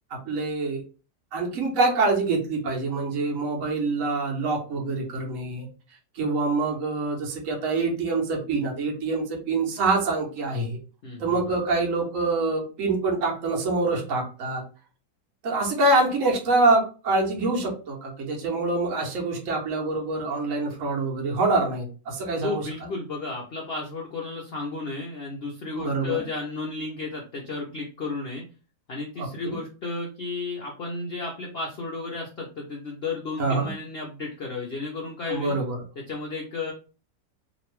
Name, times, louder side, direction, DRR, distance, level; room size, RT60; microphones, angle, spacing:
voice 1, 0.1-0.8 1.3-5.7 6.1-10.8 11.2-14.6 15.4-22.9 25.8-26.2 29.2-29.6 33.4-33.7 35.3-35.8, right 3 dB, 55° right, 0 dB, 1.2 m, -25 dB
voice 2, 11.0-11.4 22.4-28.5 28.9-35.6 36.1-36.7, left 3 dB, 75° left, -1 dB, 0.5 m, -33 dB
3.0 x 2.6 x 3.0 m, 0.34 s
omnidirectional pair, 1.9 m